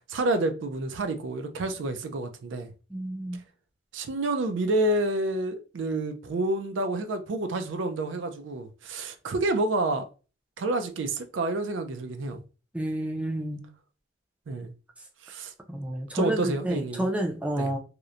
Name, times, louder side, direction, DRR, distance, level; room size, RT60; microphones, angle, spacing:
voice 1, 0.1-2.7 3.9-10.1 10.6-12.4 14.5-14.7 15.2-15.5 16.1-17.1 17.6-17.7, right 2 dB, 80° right, 0.4 m, -29 dB
voice 2, 2.9-3.4 12.7-13.6 15.7-17.8, right 1 dB, 5° right, 0.3 m, -30 dB
2.9 x 2.0 x 2.4 m
head